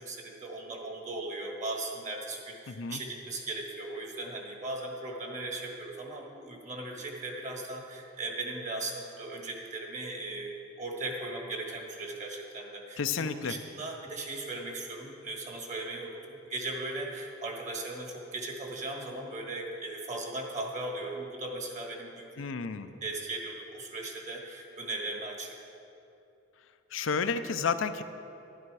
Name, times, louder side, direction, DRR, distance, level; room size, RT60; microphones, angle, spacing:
voice 1, 0.0-22.2 23.0-25.6, right 2 dB, 40° right, 1 dB, 1.5 m, -38 dB
voice 2, 2.7-3.0 13.0-13.5 22.4-22.9 26.9-28.0, left 5 dB, 85° left, 9 dB, 0.6 m, -31 dB
11.5 x 11.0 x 4.8 m, 2.8 s
head